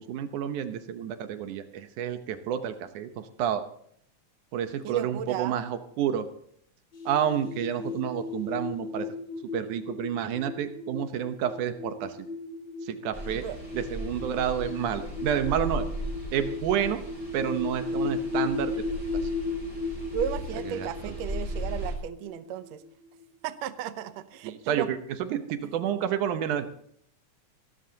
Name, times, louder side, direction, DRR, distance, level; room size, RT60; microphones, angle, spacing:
voice 1, 0.0-3.6 4.5-6.3 7.1-9.1 9.5-12.2 12.8-13.4 13.7-15.9 16.3-17.0 17.3-18.7 19.2-19.3 20.7-21.1 24.4-25.0 25.3-26.7, right 9 dB, 85° right, 9 dB, 2.5 m, -29 dB
voice 2, 4.8-5.6 13.3-13.6 20.1-22.8 23.4-24.9, right 10 dB, 70° right, 11 dB, 1.9 m, -34 dB
sound 1, 6.9-23.2, left 3 dB, 40° left, 2.6 m, -35 dB
sound 2, 13.1-22.0, equal, 10° right, 7.0 m, -37 dB
24.5 x 13.0 x 2.8 m, 0.68 s
omnidirectional pair, 3.4 m